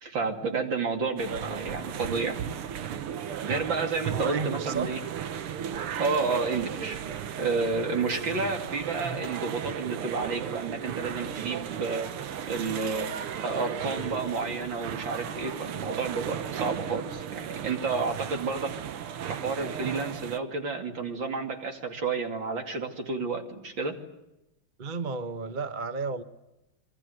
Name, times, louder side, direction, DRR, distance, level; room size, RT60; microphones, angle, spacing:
voice 1, 0.0-2.4 3.4-5.0 6.0-7.0 7.4-12.1 12.5-13.1 13.4-18.7 19.3-24.0, right 4 dB, 60° right, 5 dB, 3.4 m, -30 dB
sound 1, 1.2-20.4, right 9 dB, 85° right, 2.1 m, -35 dB
voice 2, 1.3-1.8 4.1-4.9 8.2-8.5 13.8-14.1 24.8-26.2, right 4 dB, 30° right, 11 dB, 1.0 m, -34 dB
27.0 x 23.0 x 8.0 m, 0.94 s
omnidirectional pair, 2.3 m